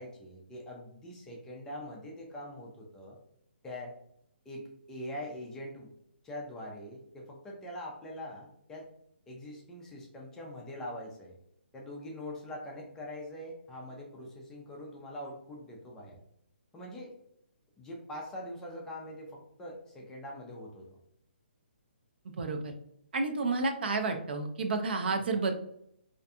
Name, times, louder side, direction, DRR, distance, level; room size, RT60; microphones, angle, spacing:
voice 1, 0.0-3.2 3.6-4.0 4.5-5.9 6.2-8.9 9.3-11.3 11.7-16.2 16.7-17.1 17.8-20.9 25.2-25.4, left 1 dB, 10° left, -2 dB, 0.3 m, -43 dB
voice 2, 22.4-22.7 23.1-25.5, right 3 dB, 60° right, 5 dB, 0.4 m, -30 dB
2.5 x 2.3 x 2.6 m, 0.71 s
hypercardioid pair, 160°, 6 cm